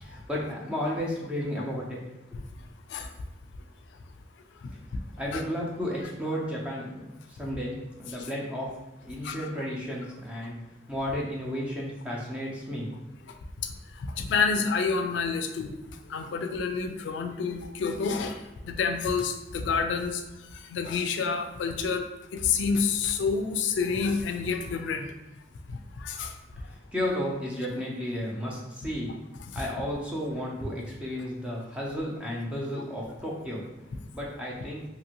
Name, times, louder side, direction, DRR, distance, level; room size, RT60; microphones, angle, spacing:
voice 1, 0.0-2.0 5.2-8.7 9.0-10.6 10.9-12.9 26.7-29.1 29.5-33.6 34.1-34.8, equal, 5° right, -4 dB, 0.6 m, -33 dB
voice 2, 14.1-15.7 16.1-20.2 20.5-25.1 25.7-26.3 29.1-29.2 29.5-29.7, left 5 dB, 90° left, 6 dB, 0.3 m, -28 dB
2.8 x 2.6 x 2.9 m, 0.99 s
head